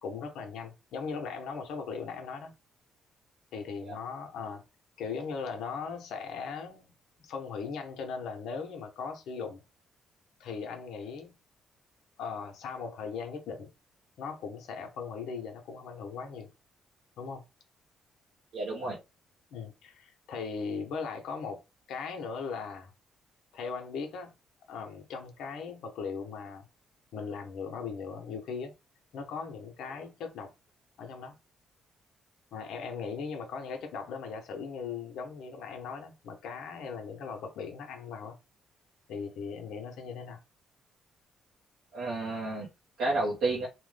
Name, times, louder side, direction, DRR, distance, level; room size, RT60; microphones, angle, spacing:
voice 1, 0.0-2.5 3.5-4.6 5.0-9.6 10.4-11.3 12.2-13.7 14.2-16.5 17.2-17.4 19.5-21.6 21.9-22.9 23.5-24.3 24.7-26.6 27.1-28.7 29.1-30.5 31.0-31.3 32.5-38.4 39.1-40.4, left 5 dB, 80° left, 0.8 m, -38 dB
voice 2, 18.5-19.0 41.9-42.7 43.0-43.7, right 2 dB, 80° right, 0.8 m, -31 dB
2.9 x 2.1 x 3.3 m
cardioid pair, 90°, 0 cm